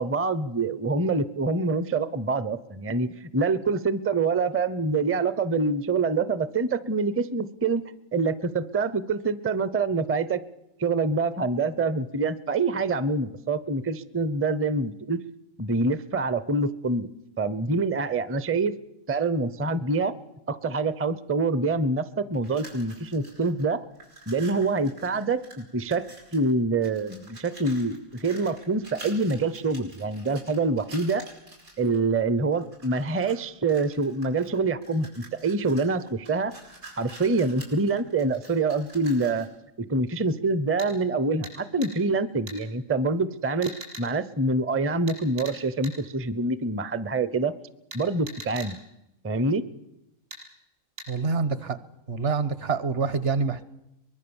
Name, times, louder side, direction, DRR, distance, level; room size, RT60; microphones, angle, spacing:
voice 1, 0.0-7.8 8.1-10.4 10.8-15.2 15.6-17.1 17.4-18.7 19.1-20.1 20.5-23.8 24.3-26.0 26.3-31.3 31.8-36.5 37.0-39.5 39.8-43.7 44.0-47.5 47.9-48.8 49.2-49.6, right 3 dB, 15° right, 16 dB, 0.4 m, -26 dB
sound 1, 22.3-23.6 23.9-26.5 26.8-32.0 32.5-33.4 33.7-39.6, right 2 dB, 90° right, 5.7 m, -48 dB
sound 2, 40.8-40.9 41.4-41.6 41.8-41.9 42.5-42.6 43.6-44.1 45.1-45.6 45.8-46.0 47.9-48.7 50.3-50.4 51.0-51.1, right 2 dB, 70° right, 6.4 m, -40 dB
voice 2, 51.1-51.8 52.1-53.6, right 4 dB, 50° right, 15 dB, 1.2 m, -26 dB
23.5 x 20.5 x 7.1 m, 0.88 s
omnidirectional pair, 1.4 m